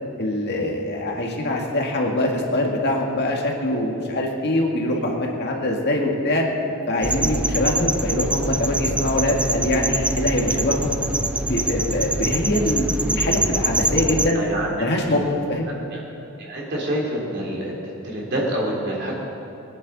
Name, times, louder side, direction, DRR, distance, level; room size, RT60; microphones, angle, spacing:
voice 1, 0.2-6.5 6.9-10.9 11.5-14.4 14.8-15.7, left 1 dB, 55° left, 0 dB, 1.9 m, -23 dB
sound 1, 7.0-14.3, right 2 dB, 5° right, 0.3 m, -24 dB
voice 2, 14.3-14.7 15.9-16.0 16.4-17.7 18.1-19.2, right 1 dB, 55° right, -3 dB, 3.4 m, -26 dB
22.0 x 10.0 x 4.1 m, 2.8 s
head